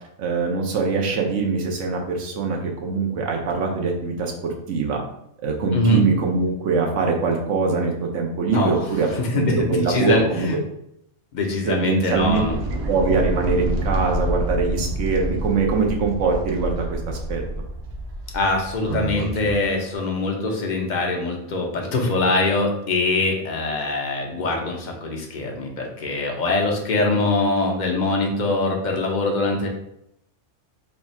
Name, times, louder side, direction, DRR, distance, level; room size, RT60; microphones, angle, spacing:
voice 1, 0.2-5.0 5.4-10.5 11.7-12.4 12.7-17.4 22.3-22.5, right 4 dB, 85° right, 1 dB, 1.1 m, -23 dB
voice 2, 5.7-6.0 8.5-8.9 9.1-10.5 11.3-12.6 18.3-29.7, left 2 dB, 45° left, 1 dB, 0.7 m, -23 dB
sound 1, 12.1-19.6, right 1 dB, 60° right, 0.8 m, -28 dB
3.4 x 2.3 x 4.1 m, 0.77 s
omnidirectional pair, 1.2 m